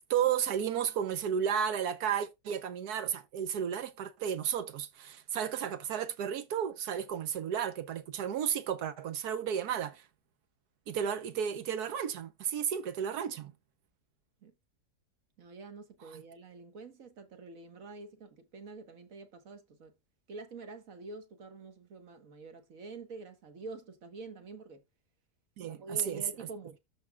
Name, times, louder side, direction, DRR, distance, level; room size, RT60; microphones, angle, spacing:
voice 1, 0.1-10.0 10.9-13.5 16.1-16.2 25.6-26.2, right 8 dB, 90° right, 1.4 m, -33 dB
voice 2, 15.4-19.9 20.3-24.8 25.6-26.8, right 3 dB, 60° right, 1.7 m, -47 dB
13.5 x 4.8 x 2.4 m
omnidirectional pair, 1.6 m